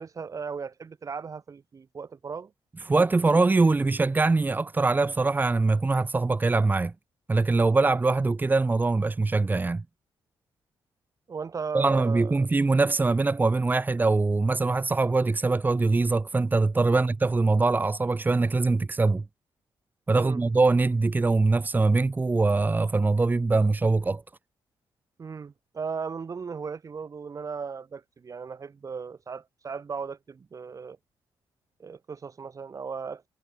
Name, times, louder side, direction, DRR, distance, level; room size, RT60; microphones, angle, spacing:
voice 1, 0.0-2.5 11.3-12.5 16.9-17.0 20.1-20.4 25.2-31.0 31.8-33.3, right 5 dB, 35° right, 4.7 m, -36 dB
voice 2, 2.9-6.9 7.3-9.8 11.7-19.2 20.1-24.2, right 3 dB, 20° right, 2.2 m, -23 dB
cardioid pair, 125°, 9 cm